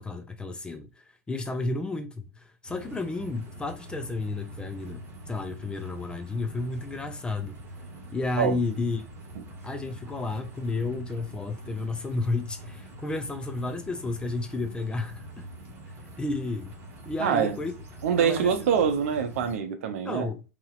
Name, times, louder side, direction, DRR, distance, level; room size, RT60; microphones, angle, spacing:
voice 1, 0.0-7.6 8.1-9.0 9.6-15.5 16.2-16.8 17.1-17.7 18.2-18.9 20.0-20.4, left 3 dB, 10° left, 0.5 m, -32 dB
sound 1, 2.7-19.6, right 1 dB, 30° right, 1.5 m, -44 dB
voice 2, 17.2-17.5 18.0-20.3, right 7 dB, 60° right, 0.7 m, -25 dB
3.9 x 2.9 x 2.4 m
figure-of-eight pair, 95°, 8 cm